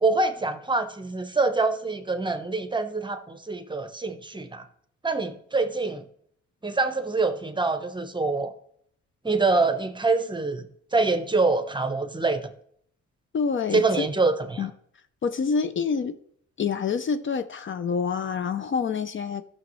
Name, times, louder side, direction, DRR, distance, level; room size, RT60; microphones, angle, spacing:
voice 1, 0.0-4.6 5.0-6.0 6.6-8.5 9.2-10.7 10.9-12.5 13.7-14.7, right 3 dB, 15° right, 0.8 m, -25 dB
voice 2, 13.3-14.1 14.6-14.7 15.2-16.2 16.6-19.4, left 6 dB, 40° left, 0.6 m, -27 dB
14.0 x 6.3 x 3.1 m
cardioid pair, 90°, 30 cm